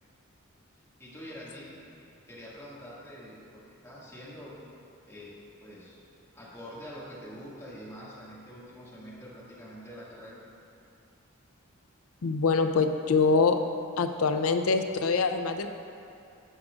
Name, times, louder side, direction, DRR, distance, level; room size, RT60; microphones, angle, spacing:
voice 1, 1.0-1.7 2.3-3.4 3.8-4.5 5.1-5.3 5.6-6.0 6.3-10.4, equal, 15° left, -9 dB, 2.0 m, -45 dB
voice 2, 12.2-13.6 14.0-15.7, left 4 dB, 85° left, 7 dB, 0.5 m, -24 dB
16.0 x 6.1 x 2.5 m, 2.5 s
head